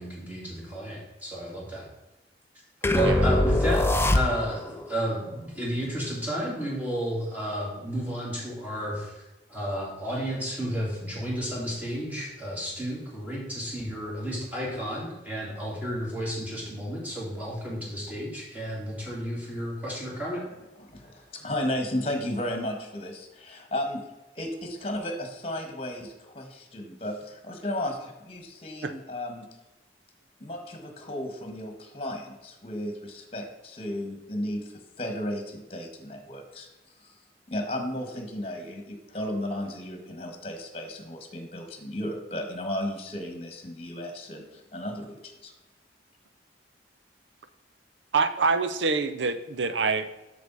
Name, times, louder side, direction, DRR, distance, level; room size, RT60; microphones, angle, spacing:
voice 1, 0.0-1.8 2.9-9.2 9.5-20.4, equal, 10° right, -6 dB, 2.9 m, -32 dB
sound 1, 2.8-4.7, left 1 dB, 15° left, 0.4 m, -23 dB
voice 2, 20.8-24.0 24.3-29.4 30.4-36.7 37.0-37.1 37.5-45.5, left 1 dB, 35° left, 5 dB, 1.5 m, -34 dB
voice 3, 48.1-50.1, right 4 dB, 85° right, 11 dB, 0.7 m, -26 dB
8.1 x 6.7 x 4.0 m, 1.0 s
head